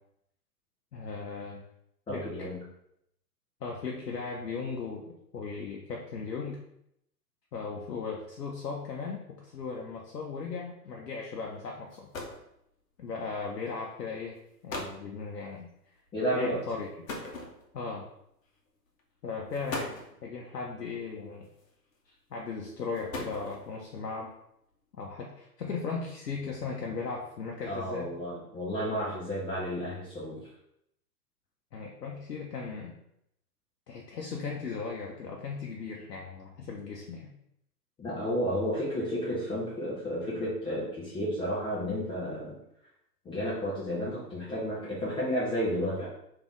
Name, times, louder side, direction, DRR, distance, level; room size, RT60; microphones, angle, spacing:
voice 1, 0.9-1.7 2.1-2.6 3.6-6.6 7.5-12.1 13.0-14.4 14.6-15.7 16.3-17.1 17.7-18.1 19.2-21.5 22.1-24.3 24.9-28.1 31.7-32.9 33.9-37.3, left 4 dB, 80° left, -1 dB, 0.7 m, -37 dB
voice 2, 2.1-2.6 16.1-16.6 27.7-30.4 38.0-42.6 43.2-46.1, equal, 10° left, -8 dB, 0.6 m, -32 dB
sound 1, 11.6-11.7 11.9-12.5 13.5-13.7 14.4-14.5 14.7-15.1 17.1-17.9 18.9-19.0 19.5-20.2 21.4-21.9 22.8-23.8, left 2 dB, 55° left, 1.0 m, -39 dB
3.5 x 2.8 x 3.5 m, 0.78 s
figure-of-eight pair, 110°, 47 cm